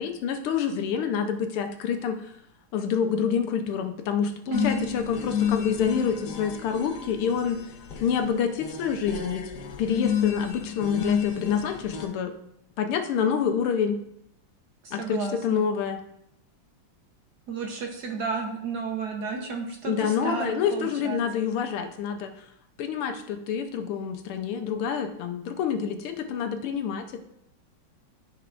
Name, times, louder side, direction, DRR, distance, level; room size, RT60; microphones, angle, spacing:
voice 1, 0.0-2.2 2.7-7.6 8.0-9.4 9.8-12.3 12.8-14.0 14.9-16.0 19.8-22.3 22.8-27.2, left 7 dB, 85° left, 6 dB, 1.7 m, -27 dB
sound 1, 4.5-12.1, left 8 dB, 60° left, 1.2 m, -31 dB
voice 2, 4.5-4.9 14.8-15.6 17.5-21.2, right 4 dB, 60° right, 2 dB, 1.3 m, -32 dB
13.5 x 4.7 x 2.5 m, 0.76 s
omnidirectional pair, 2.4 m